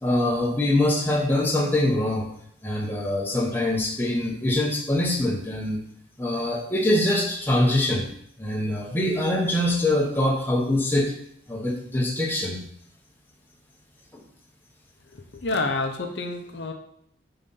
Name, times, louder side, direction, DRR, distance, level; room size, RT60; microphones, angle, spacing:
voice 1, 0.0-2.3 2.6-5.8 6.2-8.1 8.4-11.1 11.5-12.6 14.1-14.2, left 1 dB, 10° left, -2 dB, 1.0 m, -24 dB
voice 2, 15.1-16.7, left 3 dB, 65° left, 4 dB, 0.7 m, -28 dB
5.3 x 3.9 x 5.5 m, 0.68 s
head